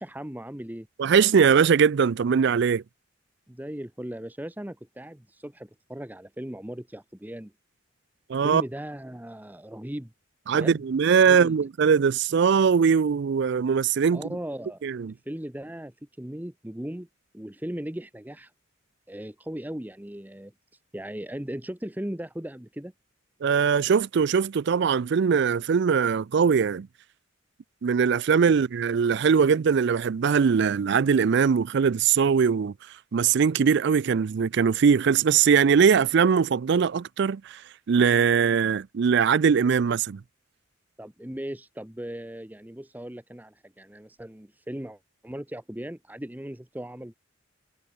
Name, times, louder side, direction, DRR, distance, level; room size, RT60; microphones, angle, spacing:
voice 1, 0.0-0.9 3.5-7.5 8.4-10.1 10.5-10.8 11.3-11.5 14.1-14.8 15.3-17.1 17.3-18.5 19.1-20.5 20.9-22.9 28.5-28.6 41.0-47.1, right 1 dB, 10° right, 0.9 m, -37 dB
voice 2, 1.0-2.8 8.3-8.6 10.5-14.2 14.8-15.1 23.4-26.9 27.8-32.7 33.1-37.6 37.9-40.2, right 6 dB, 60° right, 0.4 m, -21 dB
head